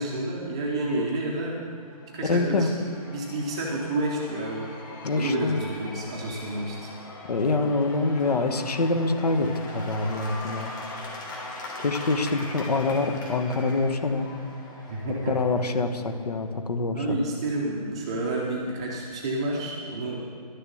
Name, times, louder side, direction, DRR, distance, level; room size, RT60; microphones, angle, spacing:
voice 1, 0.0-1.6 2.1-4.7 5.1-6.9 14.9-15.4 16.9-20.2, right 2 dB, 10° right, -3 dB, 0.5 m, -30 dB
Cheering / Applause / Crowd, 1.7-16.4, left 2 dB, 30° left, 2.2 m, -41 dB
voice 2, 2.2-2.7 5.0-5.6 7.3-10.7 11.8-14.3 15.3-17.2, left 3 dB, 85° left, 7 dB, 1.2 m, -25 dB
11.5 x 6.7 x 7.8 m, 2.2 s
hypercardioid pair, 170°, 20 cm